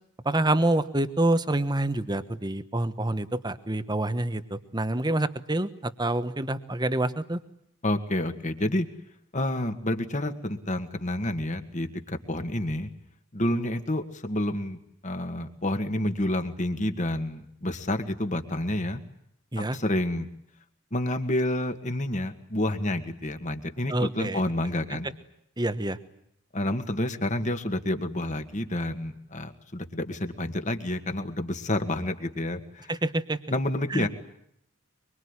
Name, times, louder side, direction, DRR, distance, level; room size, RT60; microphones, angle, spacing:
voice 1, 0.2-7.4 19.5-19.8 23.9-24.4 24.9-25.0 25.6-26.0 32.9-33.4 33.9-34.1, right 1 dB, 20° right, 12 dB, 1.2 m, -27 dB
voice 2, 7.8-8.9 9.3-12.9 13.3-14.8 15.0-19.0 19.6-20.3 20.9-25.1 26.5-32.9 33.5-34.1, left 1 dB, 35° left, 8 dB, 2.0 m, -29 dB
24.0 x 24.0 x 9.9 m, 0.73 s
head